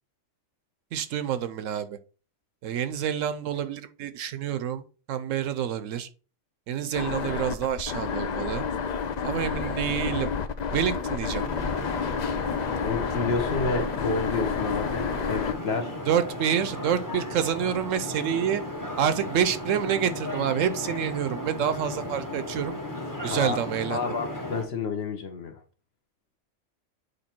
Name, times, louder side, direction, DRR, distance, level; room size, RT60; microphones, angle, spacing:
voice 1, 0.9-2.0 2.6-4.8 5.1-6.1 6.7-8.6 9.2-10.3 10.7-11.5 16.1-18.6 19.0-22.8 23.2-24.1, right 9 dB, 70° right, 0.9 m, -28 dB
sound 1, 6.9-15.5, left 6 dB, 75° left, 0.4 m, -30 dB
sound 2, 11.4-24.6, left 1 dB, 15° left, 0.9 m, -35 dB
voice 2, 12.8-16.0 23.2-23.6 23.9-25.6, left 4 dB, 50° left, 1.1 m, -30 dB
7.9 x 3.3 x 4.4 m
omnidirectional pair, 1.4 m